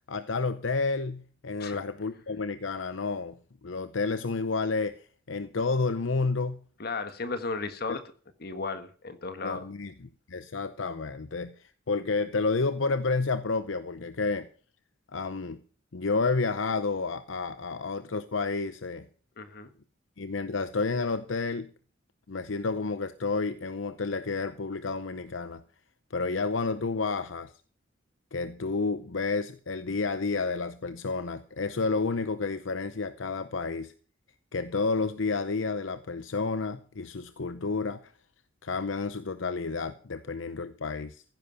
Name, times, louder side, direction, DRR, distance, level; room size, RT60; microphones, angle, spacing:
voice 1, 0.1-6.6 7.9-8.0 9.4-9.9 10.3-14.5 15.1-15.6 15.9-19.0 20.2-21.7 22.3-25.6 26.1-27.5 28.3-33.9 34.5-38.1 38.6-41.2, left 4 dB, 80° left, 12 dB, 0.8 m, -30 dB
voice 2, 6.8-8.0 8.4-9.7 19.4-19.7, left 3 dB, 55° left, 10 dB, 1.5 m, -35 dB
15.0 x 10.5 x 5.7 m, 0.43 s
head